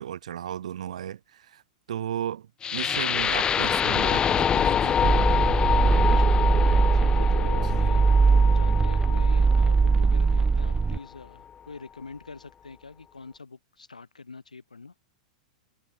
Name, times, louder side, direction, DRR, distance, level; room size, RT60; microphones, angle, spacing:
voice 1, 0.0-1.6 1.9-5.0 7.6-7.9, right 10 dB, 65° right, 2.6 m, -35 dB
sound 1, 2.6-10.6, left 8 dB, 20° left, 1.6 m, -26 dB
sound 2, 5.0-11.0, right 4 dB, 15° right, 0.9 m, -21 dB
voice 2, 6.2-6.5 6.9-8.0 8.4-14.9, left 4 dB, 85° left, 7.2 m, -44 dB
figure-of-eight pair, 100°, 4 cm